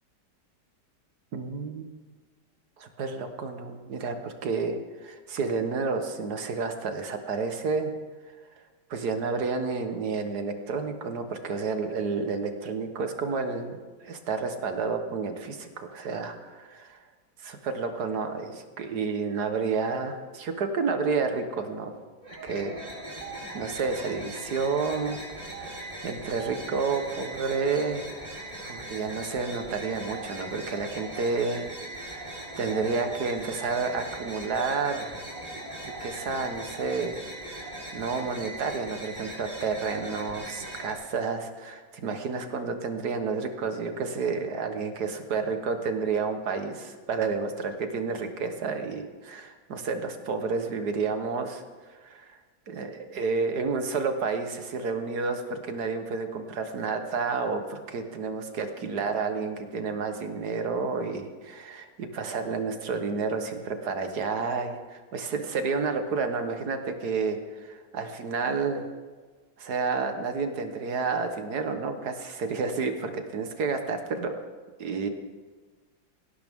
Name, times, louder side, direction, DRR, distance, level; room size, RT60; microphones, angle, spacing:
voice 1, 1.3-1.8 2.8-7.9 8.9-17.0 17.4-21.9 22.4-22.8 23.4-31.6 31.9-35.2 35.8-51.6 51.9-52.4 52.7-68.9 69.6-74.3 74.8-75.1, right 4 dB, 65° right, 7 dB, 1.7 m, -30 dB
sound 1, 22.2-40.9, right 1 dB, 25° right, 4.0 m, -40 dB
18.5 x 17.0 x 3.6 m, 1.4 s
omnidirectional pair, 1.9 m